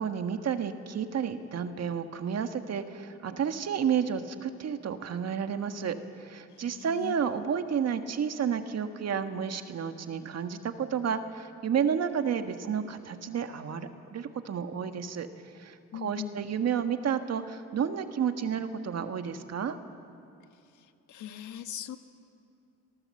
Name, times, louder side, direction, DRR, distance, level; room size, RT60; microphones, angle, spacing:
voice 1, 0.0-15.3 15.5-19.8, right 7 dB, 55° right, 7 dB, 1.6 m, -31 dB
voice 2, 6.5-7.2 15.9-16.4 20.7-22.0, left 10 dB, 75° left, 8 dB, 1.5 m, -41 dB
27.5 x 18.5 x 7.8 m, 2.6 s
cardioid pair, 90°, 30 cm